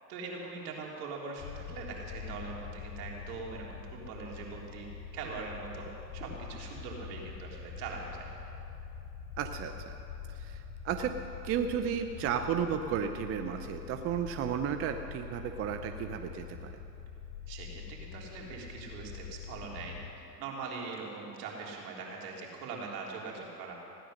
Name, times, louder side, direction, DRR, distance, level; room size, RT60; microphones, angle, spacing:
voice 1, 0.1-4.9 5.1-5.9 6.1-8.3 17.5-23.7, right 4 dB, 65° right, -1 dB, 3.3 m, -42 dB
sound 1, 1.4-20.1, left 7 dB, 40° left, 2.5 m, -45 dB
voice 2, 9.4-9.9 10.3-11.2 11.4-16.7, right 8 dB, 30° right, 7 dB, 0.6 m, -33 dB
16.0 x 10.0 x 6.5 m, 2.9 s
hypercardioid pair, 115°, 50 cm